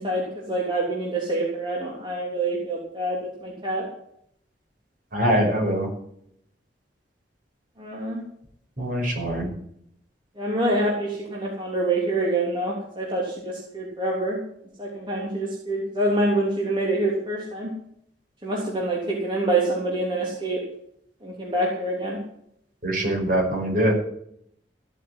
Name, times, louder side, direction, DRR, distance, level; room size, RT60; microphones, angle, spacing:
voice 1, 0.0-3.9 7.8-8.2 10.4-14.4 14.8-17.7 18.4-20.6 21.2-22.2, right 2 dB, 25° right, -3 dB, 3.3 m, -26 dB
voice 2, 5.1-5.9 8.8-9.5 22.8-23.9, equal, 50° right, 0 dB, 6.0 m, -23 dB
15.5 x 8.1 x 9.8 m, 0.72 s
head